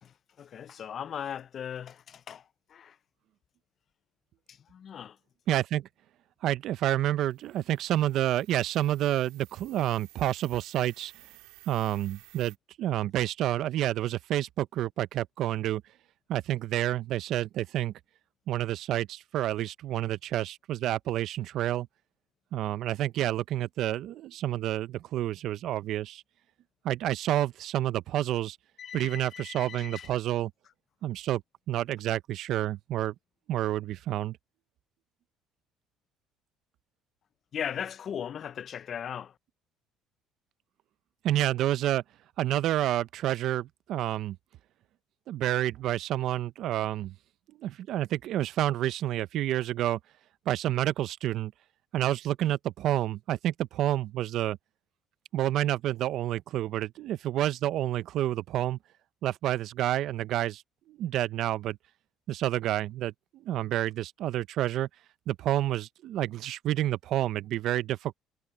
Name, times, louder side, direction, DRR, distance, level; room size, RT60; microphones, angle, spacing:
voice 1, 0.0-3.0 4.5-5.2 28.8-30.1 37.5-39.4, left 8 dB, 45° left, 0.4 m, -38 dB
voice 2, 5.5-5.9 6.4-11.1 11.7-15.8 16.3-17.9 18.5-21.9 22.5-26.2 26.8-28.6 28.9-30.5 31.0-31.4 31.7-33.1 33.5-34.4 41.2-42.0 42.4-44.4 45.3-47.1 47.6-50.0 50.5-51.5 51.9-54.6 55.3-58.8 59.2-60.6 60.9-61.8 62.3-64.9 65.3-68.2, right 13 dB, 65° right, 0.7 m, -29 dB
sound 1, 7.2-12.6, right 21 dB, 90° right, 4.0 m, -56 dB
cardioid pair, 110°, 0 cm